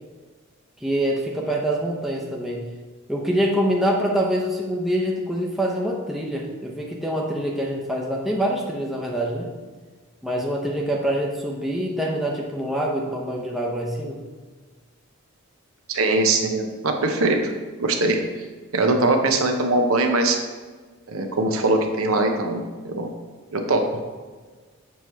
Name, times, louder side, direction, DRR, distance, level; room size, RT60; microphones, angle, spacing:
voice 1, 0.8-2.7 3.1-9.5 10.2-14.2, right 1 dB, ahead, -3 dB, 0.7 m, -25 dB
voice 2, 15.9-17.4 17.8-18.2 18.7-20.4 21.1-23.1 23.5-23.8, right 2 dB, 70° right, 3 dB, 0.8 m, -21 dB
7.2 x 3.1 x 5.6 m, 1.4 s
head